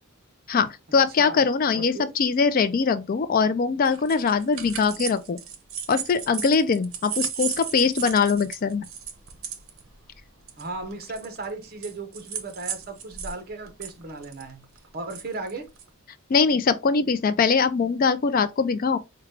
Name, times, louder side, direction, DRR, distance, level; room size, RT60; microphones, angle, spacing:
voice 1, 0.5-5.4 5.9-8.8 16.3-19.0, left 5 dB, 40° left, 0.3 m, -22 dB
voice 2, 1.7-2.1 10.6-14.7 14.9-15.7, right 3 dB, 45° right, 0.8 m, -36 dB
sound 1, 3.9-13.3 13.7-15.9, right 7 dB, 70° right, 0.7 m, -35 dB
4.9 x 2.2 x 3.2 m
head